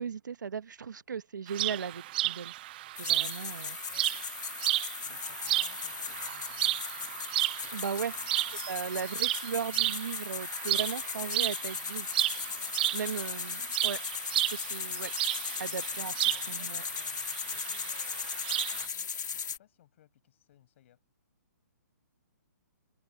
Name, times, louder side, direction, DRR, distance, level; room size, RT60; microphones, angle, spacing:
voice 1, 0.0-2.5 3.0-3.8 7.7-8.2 8.7-12.1 12.9-14.0 14.5-15.1 15.6-16.2 16.5-16.8, right 6 dB, 85° right, 1.0 m, -36 dB
sound 1, 1.5-18.9, right 16 dB, 30° right, 0.6 m, -33 dB
sound 2, 2.9-19.6, left 7 dB, 75° left, 1.7 m, -37 dB
voice 2, 5.0-6.8 8.0-9.3 13.4-13.5 16.2-21.0, left 12 dB, 40° left, 6.2 m, -62 dB
open air
hypercardioid pair, 160°, 10 cm